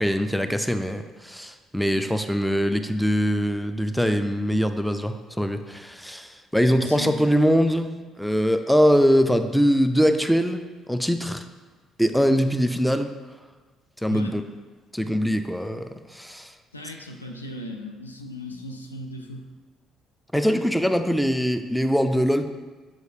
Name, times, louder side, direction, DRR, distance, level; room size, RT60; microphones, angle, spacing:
voice 1, 0.0-10.6 10.9-11.5 12.0-13.1 14.0-14.4 14.9-16.5 20.3-22.5, equal, ahead, 8 dB, 0.4 m, -22 dB
voice 2, 6.8-7.2 14.1-14.4 16.7-19.5, left 1 dB, 90° left, 3 dB, 0.4 m, -37 dB
7.9 x 4.7 x 2.7 m, 1.4 s
figure-of-eight pair, 50°, 0 cm